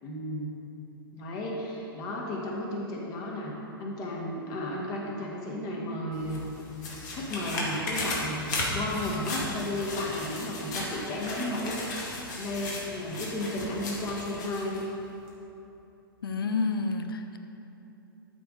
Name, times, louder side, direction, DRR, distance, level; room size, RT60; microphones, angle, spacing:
voice 1, 0.0-0.5 1.1-3.5 3.8-6.4 7.1-12.1 12.3-14.8, left 1 dB, 30° left, -2 dB, 1.8 m, -33 dB
sound 1, 6.1-14.9 15.3-15.4, left 2 dB, 50° left, 2.1 m, -35 dB
voice 2, 16.2-17.4, left 4 dB, 70° left, 7 dB, 0.8 m, -29 dB
12.5 x 4.8 x 5.3 m, 2.9 s
figure-of-eight pair, 115°, 12 cm